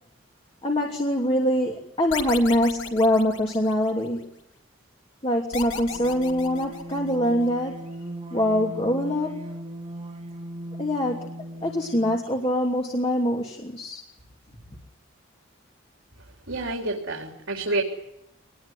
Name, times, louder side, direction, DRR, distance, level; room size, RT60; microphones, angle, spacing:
voice 1, 0.6-4.3 5.2-7.8 8.3-9.4 10.8-14.0, left 1 dB, 30° left, -1 dB, 2.8 m, -24 dB
sound 1, 2.1-4.1 5.5-7.3, left 6 dB, 75° left, 3.1 m, -36 dB
sound 2, 5.5-12.4, right 1 dB, 30° right, 3.2 m, -38 dB
voice 2, 16.5-17.8, right 2 dB, 75° right, 0 dB, 4.0 m, -28 dB
24.5 x 20.0 x 9.9 m, 0.85 s
head